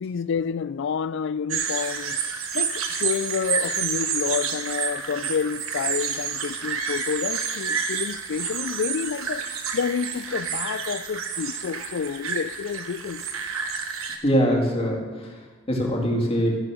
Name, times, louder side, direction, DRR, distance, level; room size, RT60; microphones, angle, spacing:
voice 1, 0.0-2.2 2.5-13.3, left 6 dB, 60° left, 0.4 m, -29 dB
sound 1, 1.5-14.2, right 6 dB, 85° right, 1.3 m, -29 dB
voice 2, 14.2-16.5, equal, 30° left, 2.3 m, -23 dB
14.0 x 7.8 x 6.3 m
head